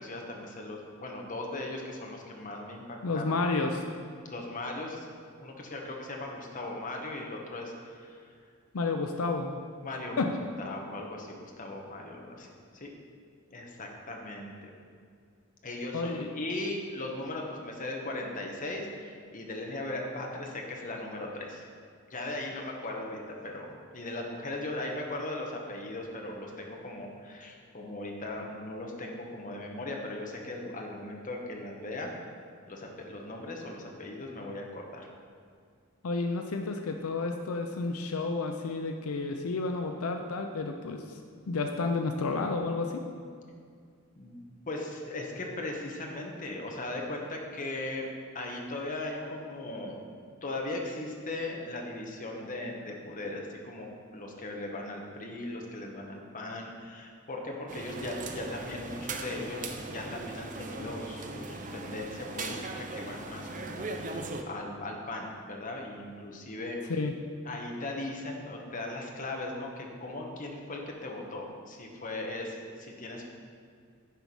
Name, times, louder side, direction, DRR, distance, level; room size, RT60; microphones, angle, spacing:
voice 1, 0.0-3.4 4.2-5.1 5.4-8.2 9.8-10.3 10.6-12.5 12.7-12.9 13.5-14.7 15.6-21.6 22.1-32.1 32.7-35.1 44.2-48.1 48.3-50.0 50.4-66.8 67.4-73.2, left 2 dB, 40° left, 1 dB, 1.2 m, -38 dB
voice 2, 3.0-3.8 8.7-9.5 10.2-10.3 15.9-16.3 36.0-41.2 41.5-43.0 66.9-67.1, left 3 dB, 85° left, 4 dB, 0.6 m, -31 dB
sound 1, 57.7-64.4, right 3 dB, 35° right, 0.6 m, -39 dB
10.0 x 4.7 x 5.4 m, 2.2 s
head